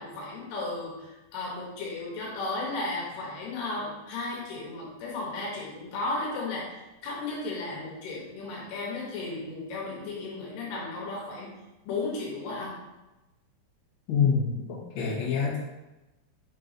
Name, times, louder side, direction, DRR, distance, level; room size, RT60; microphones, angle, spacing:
voice 1, 0.0-11.5 11.9-12.8, left 3 dB, 75° left, -4 dB, 3.1 m, -34 dB
voice 2, 14.1-14.5 14.9-15.6, left 6 dB, 55° left, -7 dB, 2.2 m, -25 dB
6.5 x 5.4 x 2.7 m, 1.0 s
omnidirectional pair, 4.9 m